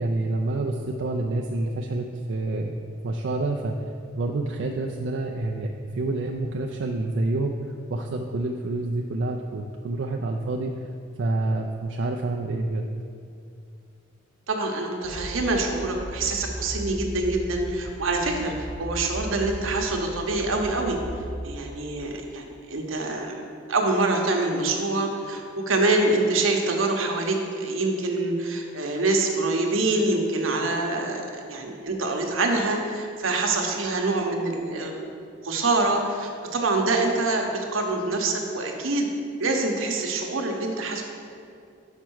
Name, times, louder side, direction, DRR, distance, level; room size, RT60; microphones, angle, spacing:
voice 1, 0.0-2.7 3.0-3.7 4.1-7.6 7.9-10.7 11.2-12.9, right 2 dB, 60° right, 0 dB, 0.4 m, -28 dB
voice 2, 14.5-21.0 21.4-23.4 23.7-31.2 31.5-35.1 35.4-39.1 39.4-41.0, right 2 dB, 80° right, 2 dB, 0.9 m, -25 dB
sound 1, 15.0-21.4, right 1 dB, 60° left, 0.9 m, -36 dB
5.8 x 4.5 x 6.2 m, 2.4 s
head